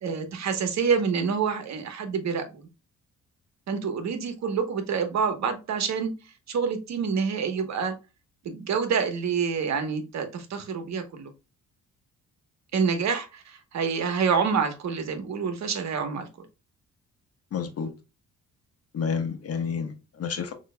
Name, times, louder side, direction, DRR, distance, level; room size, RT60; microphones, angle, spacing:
voice 1, 0.0-2.7 3.7-6.1 6.5-7.9 8.4-11.3 12.7-16.3, right 6 dB, 60° right, 1.2 m, -27 dB
voice 2, 17.5-17.9 18.9-20.5, left 6 dB, 50° left, 1.1 m, -30 dB
6.5 x 3.0 x 2.2 m
cardioid pair, 90°, 30 cm